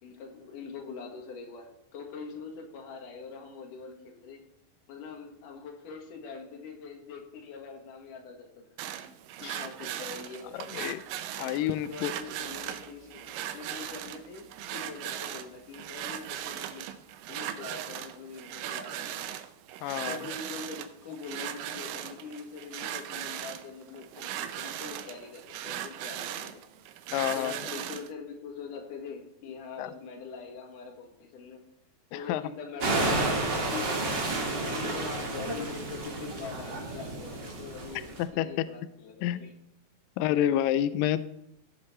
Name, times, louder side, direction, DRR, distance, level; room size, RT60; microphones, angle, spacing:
voice 1, 0.0-4.4 4.9-8.7 9.4-10.9 11.6-16.9 17.3-19.4 20.1-26.6 27.2-31.6 32.1-39.5, left 5 dB, 60° left, 3 dB, 3.1 m, -43 dB
sound 1, 8.8-28.1, right 11 dB, 75° right, 2.1 m, -38 dB
voice 2, 10.5-11.0 11.3-12.1 19.8-20.2 27.1-27.5 29.8-29.9 32.1-32.4 34.6-34.7 38.2-38.6 39.2-39.4 40.2-41.2, left 12 dB, 85° left, 14 dB, 1.9 m, -29 dB
sound 2, 32.8-38.2, right 2 dB, 35° right, 1.9 m, -31 dB
15.5 x 7.7 x 4.3 m, 0.80 s
omnidirectional pair, 4.4 m